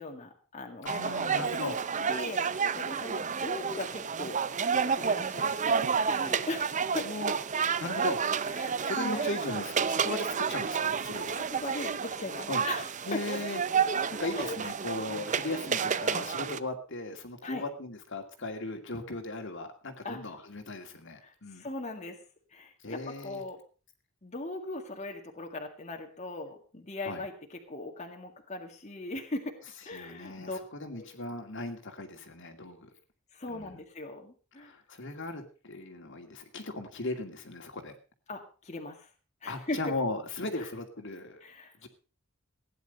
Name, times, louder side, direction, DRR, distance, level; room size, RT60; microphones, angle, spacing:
voice 1, 0.0-1.5 2.0-4.4 4.8-7.1 8.0-9.3 11.3-13.4 14.4-14.6 17.4-17.6 20.0-20.2 21.2-22.2 22.5-23.6 24.2-29.6 29.8-30.6 30.9-31.1 33.3-34.7 38.3-39.1 39.4-39.9 40.6-40.7 41.4-41.9, left 2 dB, 35° left, 2 dB, 1.9 m, -39 dB
voice 2, 0.8-1.8 7.0-7.3 7.6-8.2 8.8-11.4 12.5-12.6 13.1-21.7 22.8-23.4 27.0-27.2 29.9-30.5 30.8-32.9 33.5-33.8 34.6-37.9 39.5-41.4 41.8-41.9, left 2 dB, 65° left, 5 dB, 2.3 m, -37 dB
sound 1, 0.9-16.6, right 6 dB, 35° right, 0.6 m, -30 dB
16.5 x 10.0 x 5.4 m, 0.37 s
head